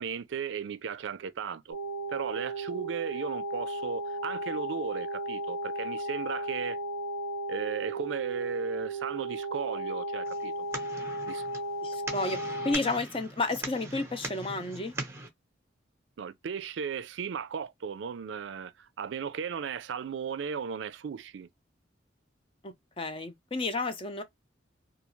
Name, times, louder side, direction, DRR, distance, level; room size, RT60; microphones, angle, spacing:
voice 1, 0.0-1.8 2.1-6.8 7.5-10.7 11.3-11.5 16.2-21.5, right 6 dB, 75° right, 0.4 m, -36 dB
sound 1, 1.7-12.8, right 1 dB, 70° left, 0.9 m, -35 dB
sound 2, 10.3-15.3, right 2 dB, 15° right, 0.7 m, -41 dB
voice 2, 11.8-12.4 12.6-14.9 22.6-24.2, left 3 dB, 30° left, 0.5 m, -31 dB
2.4 x 2.3 x 3.0 m
head